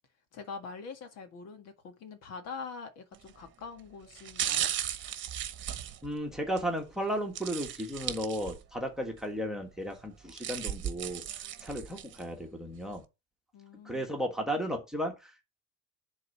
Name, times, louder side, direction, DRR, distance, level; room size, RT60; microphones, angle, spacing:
voice 1, 0.3-4.7 13.5-14.2, left 5 dB, 55° left, 1.8 m, -44 dB
sound 1, 3.1-3.4 4.1-6.7 7.4-8.8 9.2-9.3 10.1-12.2 12.7-12.8, right 10 dB, 40° right, 1.1 m, -36 dB
voice 2, 6.0-13.0 13.8-15.4, equal, ahead, 1.5 m, -34 dB
10.5 x 4.0 x 5.6 m
cardioid pair, 160°, 30 cm